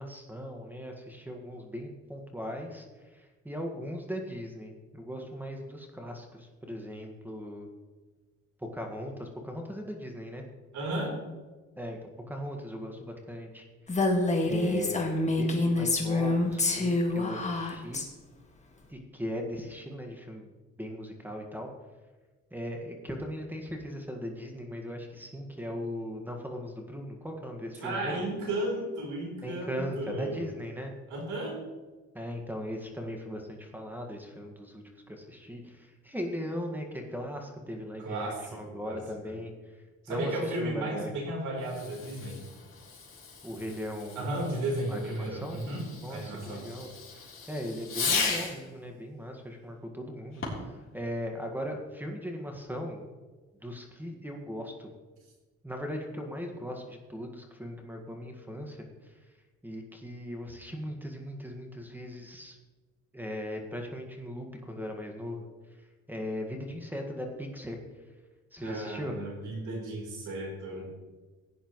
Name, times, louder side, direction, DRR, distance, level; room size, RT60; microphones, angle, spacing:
voice 1, 0.0-7.7 8.6-10.4 11.8-14.2 14.4-18.0 18.9-20.5 20.8-21.7 22.5-28.2 29.4-30.9 32.1-41.1 43.4-45.7 46.0-53.1 53.6-54.9 55.6-59.2 59.6-62.6 63.1-65.4 66.1-67.8 68.5-69.1, equal, 5° right, 2 dB, 1.7 m, -39 dB
voice 2, 10.7-11.1 27.8-30.5 31.1-31.6 38.0-39.3 40.0-42.4 44.2-46.7 68.6-71.1, right 1 dB, 75° right, 0 dB, 3.9 m, -34 dB
Female speech woman speaking, 13.9-18.0, left 2 dB, 25° left, 1.9 m, -27 dB
Fireworks, 41.6-48.7 50.3-50.8, left 4 dB, 40° left, 3.7 m, -36 dB
16.0 x 9.9 x 3.2 m, 1.3 s
cardioid pair, 90°, 30 cm